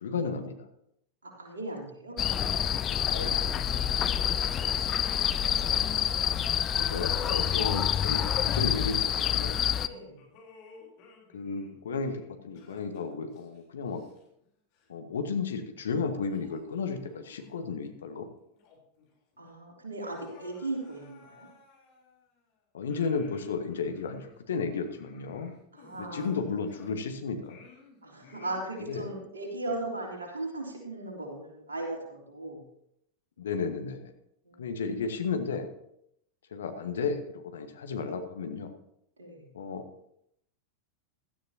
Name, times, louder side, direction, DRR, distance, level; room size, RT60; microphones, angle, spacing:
voice 1, 0.0-0.7 3.1-3.5 3.9-4.2 6.7-9.6 11.3-14.0 14.9-18.3 22.7-25.5 26.0-27.6 28.9-29.1 33.4-34.1 34.6-35.7 36.5-38.7 39.5-39.8, left 5 dB, 65° left, 6 dB, 1.5 m, -33 dB
voice 2, 1.2-2.2 4.1-5.0 7.3-7.5 9.9-10.2 19.4-21.5 25.7-26.3 28.0-32.6 34.4-34.6 39.2-39.5, right 2 dB, 75° right, -1 dB, 3.5 m, -38 dB
sound 1, 2.2-9.9, left 9 dB, 30° left, 0.6 m, -27 dB
sound 2, 9.7-14.5 14.7-14.9 15.6-15.7 16.3-17.6 18.0-18.1 18.5-19.1 19.3-19.4 20.0-22.4 22.9-27.1 27.4-29.0, left 4 dB, 45° left, 3.9 m, -55 dB
16.5 x 13.0 x 2.9 m, 0.75 s
figure-of-eight pair, 90°, 0 cm